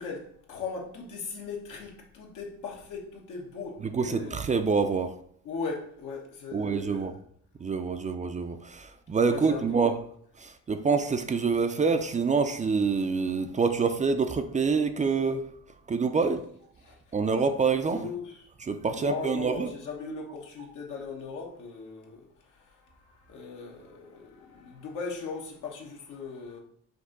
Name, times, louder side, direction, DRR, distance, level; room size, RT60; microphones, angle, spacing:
voice 1, 0.0-4.3 5.4-7.2 9.3-9.9 16.8-17.0 17.9-18.5 18.9-26.6, left 4 dB, 80° left, 1.2 m, -39 dB
voice 2, 3.8-5.1 6.5-7.1 7.6-9.9 10.4-15.4 15.9-16.4 17.1-18.1 18.7-19.7, right 5 dB, 25° right, 0.4 m, -26 dB
5.2 x 2.7 x 3.8 m
cardioid pair, 90°, 30 cm